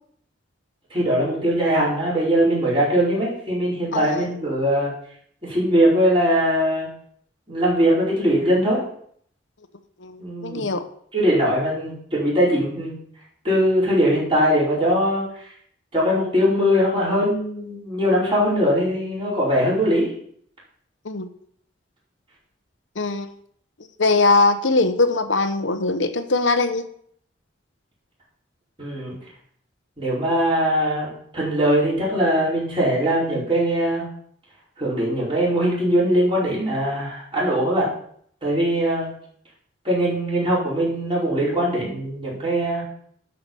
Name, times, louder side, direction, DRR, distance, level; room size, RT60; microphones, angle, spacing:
voice 1, 0.9-4.9 5.4-6.9 7.5-8.8 10.2-10.6 11.1-12.9 13.4-15.5 15.9-20.1 28.8-29.1 30.0-34.1 34.8-37.9 38.4-39.1 39.8-42.8, equal, 30° right, -7 dB, 5.0 m, -21 dB
voice 2, 10.0-10.9 21.0-21.3 23.0-23.3 24.0-26.8, left 3 dB, 80° left, 9 dB, 1.0 m, -21 dB
12.0 x 5.8 x 5.4 m, 0.64 s
head